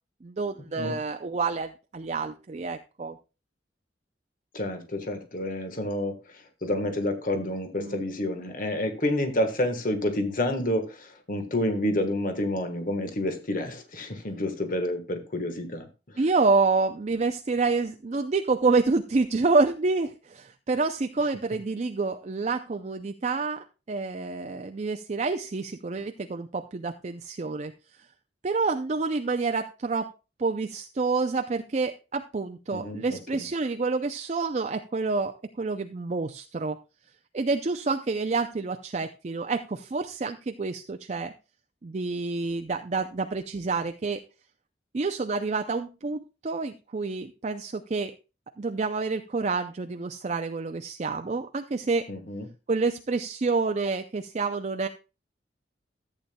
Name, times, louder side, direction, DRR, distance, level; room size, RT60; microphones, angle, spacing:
voice 1, 0.2-3.2 7.8-8.0 16.2-27.7 28.0-28.1 28.4-30.1 30.4-36.8 37.3-41.3 41.8-44.2 44.9-48.1 48.6-52.1 52.7-54.9, right 3 dB, 35° right, 7 dB, 0.4 m, -28 dB
voice 2, 4.5-6.1 6.6-15.9 32.7-33.2 52.1-52.4, left 1 dB, 45° left, 6 dB, 1.3 m, -29 dB
14.0 x 8.6 x 2.2 m, 0.30 s
head